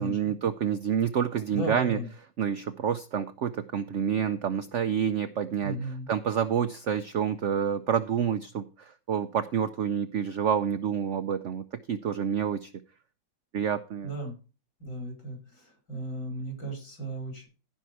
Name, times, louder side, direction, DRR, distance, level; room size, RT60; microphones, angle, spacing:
voice 1, 0.0-2.0 2.4-12.7 13.5-14.1, right 8 dB, 75° right, 10 dB, 0.6 m, -28 dB
voice 2, 1.5-2.1 5.6-6.1 14.0-14.3 14.8-17.5, right 1 dB, 70° left, 2 dB, 5.4 m, -35 dB
15.0 x 5.6 x 4.6 m, 0.34 s
omnidirectional pair, 2.0 m